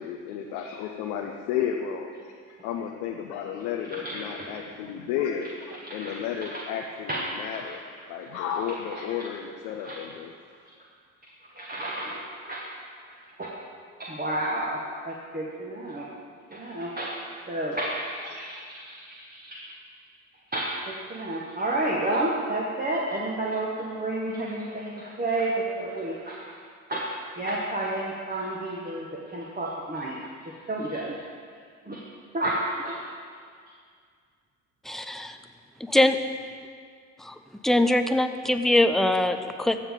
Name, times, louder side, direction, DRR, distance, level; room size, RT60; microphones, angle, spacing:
voice 1, 0.0-7.8 8.1-10.3 18.3-18.4, left 8 dB, 75° left, 2 dB, 0.8 m, -32 dB
voice 2, 3.8-4.6 5.8-6.6 7.1-7.2 9.8-10.0 11.5-12.6 13.4-13.5 14.0-14.8 15.0-16.1 16.5-17.2 17.5-19.6 20.5-26.6 26.9-30.2 30.4-31.1 31.8-32.0 32.3-33.0, right 1 dB, 25° right, -4 dB, 1.6 m, -31 dB
voice 3, 34.9-35.4 35.8-36.2 37.2-37.4 37.6-39.8, left 1 dB, ahead, 8 dB, 0.6 m, -22 dB
15.0 x 7.2 x 3.9 m, 2.1 s
hypercardioid pair, 50°, 39 cm